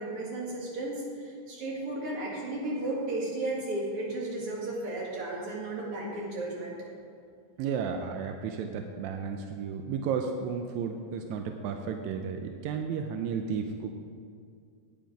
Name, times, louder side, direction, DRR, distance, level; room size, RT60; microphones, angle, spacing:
voice 1, 0.0-6.8, right 2 dB, 45° right, -4 dB, 2.9 m, -34 dB
voice 2, 7.6-13.9, right 6 dB, 80° right, 5 dB, 1.7 m, -33 dB
10.0 x 9.5 x 5.1 m, 2.3 s
omnidirectional pair, 3.8 m